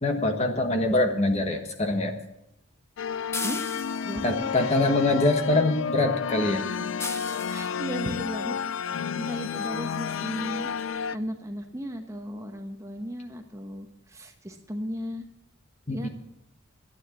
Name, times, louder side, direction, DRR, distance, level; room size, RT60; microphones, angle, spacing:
voice 1, 0.0-2.1 4.2-6.6 15.9-16.1, left 2 dB, 35° left, 5 dB, 1.3 m, -24 dB
sound 1, 3.0-11.2, left 7 dB, 80° left, 0.4 m, -31 dB
sound 2, 3.3-4.3 7.0-7.8 9.3-9.4 9.9-10.1 10.4-10.5 10.8-10.9, left 3 dB, 15° left, 0.6 m, -36 dB
voice 2, 4.0-4.5 6.7-6.9 7.5-10.7 11.1-15.3 15.9-16.1, equal, 15° right, 4 dB, 1.0 m, -36 dB
12.5 x 9.6 x 7.1 m, 0.85 s
head